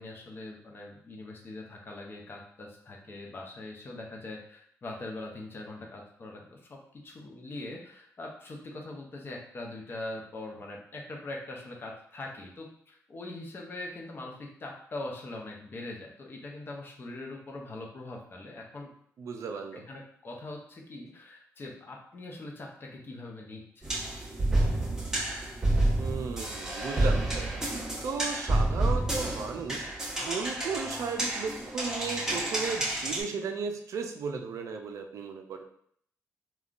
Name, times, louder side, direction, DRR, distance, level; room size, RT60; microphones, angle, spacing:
voice 1, 0.0-18.9 19.7-23.8, left 2 dB, 40° left, 0 dB, 0.7 m, -42 dB
voice 2, 19.2-19.9 26.0-35.6, right 5 dB, 65° right, 4 dB, 0.4 m, -35 dB
sound 1, 23.8-33.2, right 1 dB, 10° right, 1.0 m, -29 dB
3.6 x 2.3 x 2.4 m, 0.64 s
cardioid pair, 90°, 6 cm